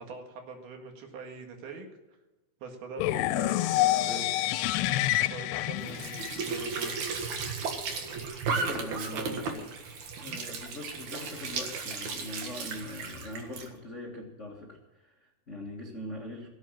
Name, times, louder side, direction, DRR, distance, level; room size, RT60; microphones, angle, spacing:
voice 1, 0.0-1.9 2.6-4.3 5.3-7.2 9.1-9.7 10.2-10.4, right 4 dB, 70° right, 4 dB, 3.7 m, -43 dB
sound 1, 3.0-7.0, left 15 dB, 90° left, 2.7 m, -28 dB
Squeak / Sink (filling or washing) / Trickle dribble, 5.8-13.7, right 4 dB, 55° right, 2.5 m, -35 dB
voice 2, 8.5-9.7 10.2-16.5, left 1 dB, 65° left, 0 dB, 0.7 m, -41 dB
17.5 x 8.2 x 7.4 m, 1.1 s
omnidirectional pair, 4.7 m